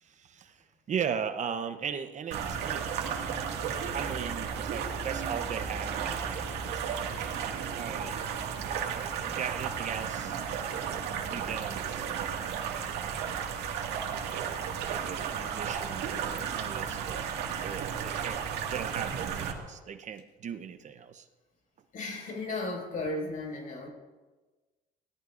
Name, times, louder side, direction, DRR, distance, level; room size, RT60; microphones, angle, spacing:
voice 1, 0.0-3.4 3.9-7.1 7.7-8.2 8.9-10.4 11.3-12.6 12.9-13.2 13.8-14.6 14.8-17.3 17.6-18.4 18.7-21.3, right 7 dB, 45° right, 9 dB, 0.8 m, -38 dB
sound 1, 2.3-19.5, right 7 dB, 85° right, 2.0 m, -34 dB
voice 2, 21.9-23.9, left 2 dB, 50° left, 0 dB, 5.8 m, -35 dB
25.0 x 17.5 x 2.6 m, 1.2 s
cardioid pair, 110°, 17 cm